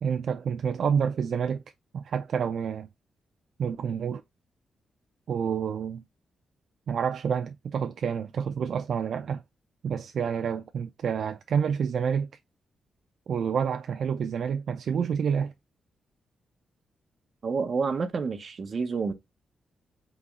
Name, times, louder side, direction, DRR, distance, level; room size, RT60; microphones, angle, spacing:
voice 1, 0.0-1.6 1.9-2.9 3.6-4.2 5.3-6.0 6.9-9.4 9.8-12.3 13.3-15.5, right 7 dB, 60° right, 0.4 m, -28 dB
voice 2, 17.4-19.1, right 4 dB, 40° right, 0.8 m, -29 dB
4.1 x 3.0 x 3.6 m
wide cardioid pair, 140°, 0 cm